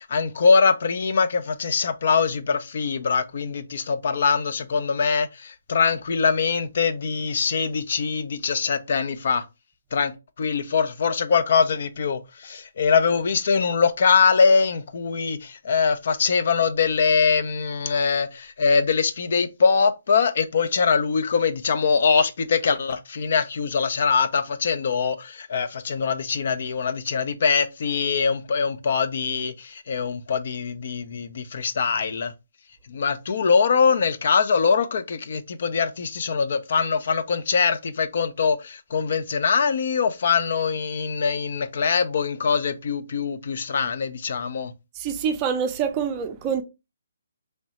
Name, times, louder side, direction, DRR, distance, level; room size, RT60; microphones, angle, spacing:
voice 1, 0.0-9.4 9.9-10.1 10.4-32.3 32.9-44.7, left 5 dB, 55° left, 0.4 m, -23 dB
voice 2, 45.0-46.6, right 7 dB, 25° right, 0.4 m, -26 dB
3.1 x 2.6 x 2.9 m
hypercardioid pair, 150°, 0 cm